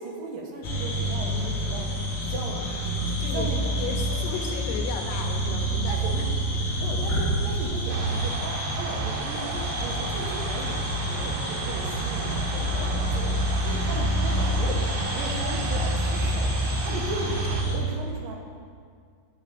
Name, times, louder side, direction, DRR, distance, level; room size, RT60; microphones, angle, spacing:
voice 1, 0.0-3.7 4.1-4.2 4.6-4.7 5.5-6.1 6.8-18.3, right 2 dB, 65° right, -1 dB, 2.5 m, -37 dB
sound 1, 0.6-17.8, equal, 50° left, 1.3 m, -27 dB
voice 2, 3.1-6.2 16.9-17.0, left 6 dB, 75° left, 2 dB, 2.9 m, -35 dB
sound 2, 7.9-17.6, right 5 dB, 90° right, 3.1 m, -35 dB
11.0 x 4.9 x 8.1 m, 2.1 s
omnidirectional pair, 4.9 m